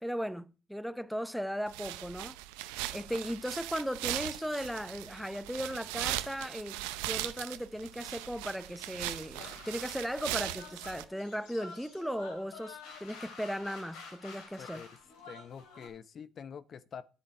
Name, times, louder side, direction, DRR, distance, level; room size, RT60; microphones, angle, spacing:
voice 1, 0.0-2.4 2.9-14.8, equal, ahead, 0.8 m, -37 dB
sound 1, 1.7-11.0, right 15 dB, 85° right, 0.6 m, -39 dB
sound 2, 9.4-15.9, left 5 dB, 80° left, 3.5 m, -49 dB
voice 2, 15.3-17.0, left 7 dB, 50° left, 0.7 m, -46 dB
9.8 x 8.5 x 4.4 m
hypercardioid pair, 60°, 0 cm